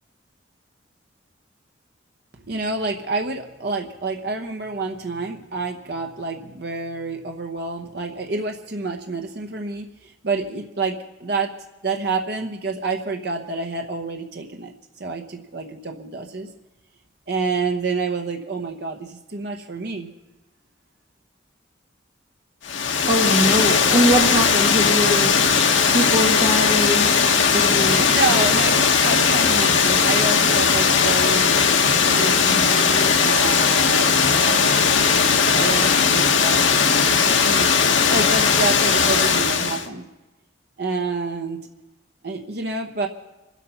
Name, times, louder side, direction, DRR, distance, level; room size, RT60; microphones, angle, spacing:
voice 1, 2.5-11.5 11.8-16.5 17.3-20.1 27.9-34.8 35.1-40.0 40.8-41.6 42.2-43.1, right 3 dB, 55° right, 3 dB, 1.0 m, -28 dB
Water, 22.6-39.9, left 6 dB, 75° left, 1.3 m, -18 dB
voice 2, 23.1-25.6 25.9-28.1, equal, 35° right, -2 dB, 1.8 m, -22 dB
25.0 x 8.3 x 5.8 m, 1.1 s
head